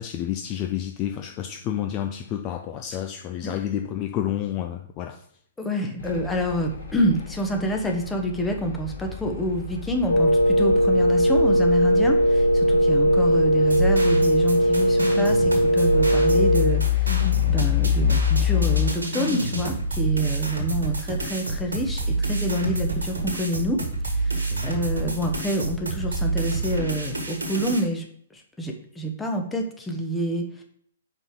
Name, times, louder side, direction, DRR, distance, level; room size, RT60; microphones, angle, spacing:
voice 1, 0.0-5.2 24.5-24.7, left 11 dB, 30° left, 5 dB, 0.4 m, -30 dB
voice 2, 5.6-23.8 24.1-28.1 28.3-30.6, equal, 10° left, 2 dB, 1.0 m, -27 dB
sound 1, 6.0-18.9, left 9 dB, 65° left, 1.4 m, -28 dB
Wind instrument woodwind instrument, 10.1-16.8, equal, 85° left, 0.9 m, -19 dB
sound 2, 13.6-27.8, right 3 dB, 75° right, 1.4 m, -28 dB
5.3 x 4.3 x 4.8 m, 0.63 s
figure-of-eight pair, 115°, 0 cm